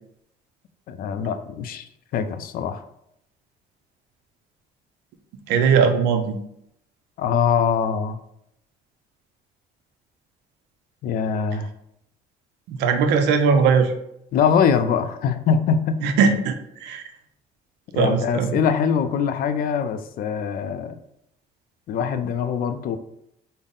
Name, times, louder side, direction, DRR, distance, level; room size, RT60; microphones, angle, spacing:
voice 1, 0.9-1.9 2.1-2.8 7.2-8.2 11.0-11.7 14.3-16.0 17.9-21.0 21.9-23.0, left 7 dB, 60° left, 9 dB, 0.4 m, -23 dB
voice 2, 5.5-6.4 12.7-13.9 16.0-16.6 16.8-17.0 17.9-18.6, right 5 dB, 90° right, 7 dB, 0.5 m, -19 dB
3.6 x 2.0 x 3.8 m, 0.77 s
cardioid pair, 110°, 17 cm